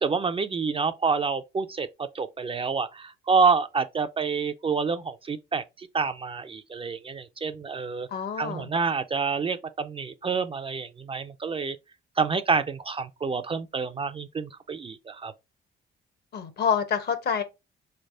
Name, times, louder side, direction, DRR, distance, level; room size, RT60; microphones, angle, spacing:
voice 1, 0.0-8.1 8.4-11.8 12.2-15.3, right 5 dB, 30° right, 0.3 m, -28 dB
voice 2, 8.1-8.7 16.3-17.4, left 7 dB, 55° left, 0.8 m, -27 dB
4.0 x 3.3 x 2.6 m
cardioid pair, 90°, 20 cm